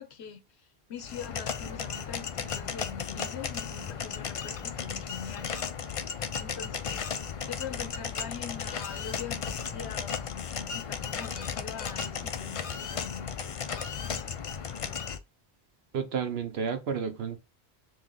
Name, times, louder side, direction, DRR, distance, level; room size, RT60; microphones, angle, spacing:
voice 1, 0.0-5.6 6.4-14.3, left 7 dB, 85° left, 0.9 m, -43 dB
sound 1, 1.0-15.2, left 7 dB, 55° left, 0.3 m, -35 dB
voice 2, 15.9-17.4, right 6 dB, 70° right, 0.9 m, -31 dB
3.2 x 3.0 x 3.7 m
omnidirectional pair, 1.1 m